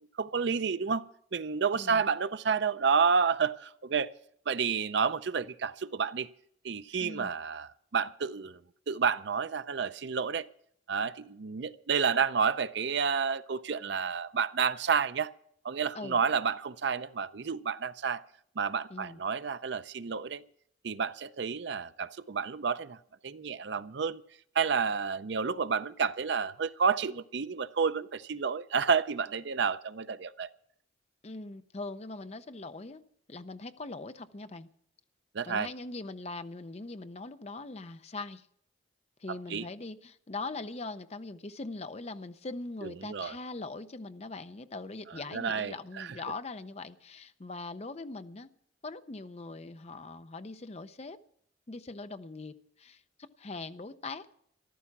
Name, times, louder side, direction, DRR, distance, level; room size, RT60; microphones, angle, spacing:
voice 1, 0.2-1.0 1.3-4.1 4.5-6.3 6.6-8.6 8.9-10.5 10.9-15.3 15.6-18.2 18.6-20.4 20.8-23.0 23.2-24.2 24.6-30.5 35.3-35.7 39.5-39.7 42.8-43.3 45.3-46.1, right 6 dB, 60° right, 0.5 m, -30 dB
voice 2, 1.7-2.0 7.0-7.3 15.9-16.2 18.9-19.2 31.2-33.0 33.3-34.7 35.5-38.5 39.2-48.5 48.8-51.2 51.7-54.3, left 3 dB, 30° left, 0.5 m, -41 dB
14.0 x 12.5 x 5.9 m
head